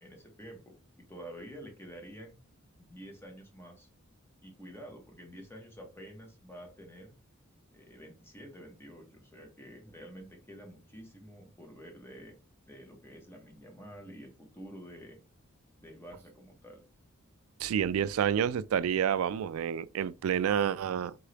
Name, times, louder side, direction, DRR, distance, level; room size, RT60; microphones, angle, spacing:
voice 1, 0.0-2.4 2.8-3.9 4.4-7.1 7.7-12.3 12.7-15.2 15.8-16.8, equal, 10° left, 1.1 m, -49 dB
voice 2, 17.6-21.2, right 8 dB, 80° right, 0.3 m, -29 dB
3.8 x 3.6 x 3.3 m
head